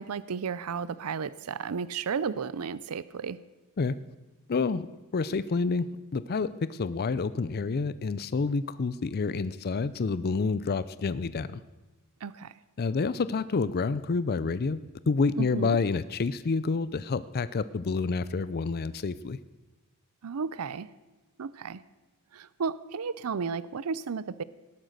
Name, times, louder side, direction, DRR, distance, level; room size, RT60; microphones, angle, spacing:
voice 1, 0.0-3.4 12.2-12.6 15.4-15.8 20.2-20.9 21.4-21.8 22.3-24.4, right 5 dB, 75° right, 18 dB, 0.5 m, -33 dB
voice 2, 4.5-4.9 5.1-5.9 6.1-11.6 12.8-14.8 15.1-19.4, left 4 dB, 45° left, 16 dB, 0.5 m, -28 dB
18.0 x 11.5 x 6.6 m, 1.2 s
head